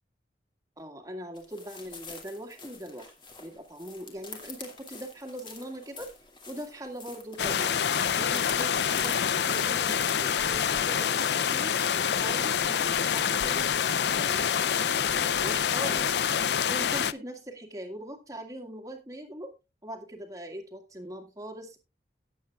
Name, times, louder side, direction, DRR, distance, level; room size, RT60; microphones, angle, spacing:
voice 1, 0.8-3.1 3.4-6.1 6.5-7.7 8.2-11.8 12.2-13.7 14.1-16.2 16.7-19.5 19.8-21.8, right 1 dB, 20° right, 3 dB, 1.9 m, -41 dB
sound 1, 1.3-10.8, left 4 dB, 25° left, 2.4 m, -45 dB
sound 2, 7.4-17.1, left 8 dB, 70° left, 0.5 m, -26 dB
18.0 x 8.1 x 2.4 m, 0.25 s
head